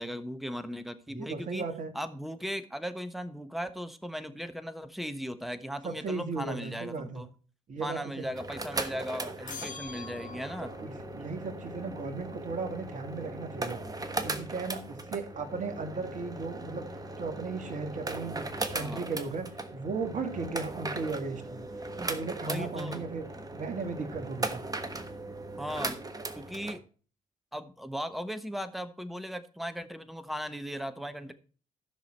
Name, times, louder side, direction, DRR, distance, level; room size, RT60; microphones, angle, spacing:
voice 1, 0.0-1.6 1.9-7.3 7.8-10.7 18.8-19.0 22.4-23.0 25.6-26.0 26.4-26.8 27.5-31.3, equal, ahead, 10 dB, 1.2 m, -37 dB
voice 2, 1.1-1.9 5.8-7.2 7.7-8.2 10.8-13.8 14.2-16.8 17.2-18.4 18.7-21.6 22.0-23.3 23.5-24.6, right 4 dB, 45° right, 7 dB, 2.1 m, -36 dB
sound 1, 8.3-26.8, right 2 dB, 20° right, 1.3 m, -38 dB
sound 2, 9.5-10.8, left 5 dB, 50° left, 1.2 m, -43 dB
14.5 x 6.2 x 4.4 m, 0.39 s
figure-of-eight pair, 45°, 18 cm